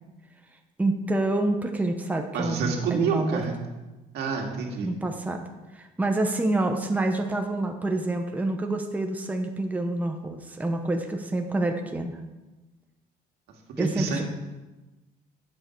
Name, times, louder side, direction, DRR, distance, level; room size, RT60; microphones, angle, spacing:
voice 1, 0.8-3.4 4.8-5.5 5.7-12.2 13.8-14.2, right 2 dB, 10° right, 4 dB, 0.9 m, -27 dB
voice 2, 2.3-3.6 4.1-4.9 13.8-14.2, right 5 dB, 75° right, 1 dB, 2.1 m, -28 dB
11.5 x 7.6 x 4.6 m, 1.1 s
cardioid pair, 110°, 17 cm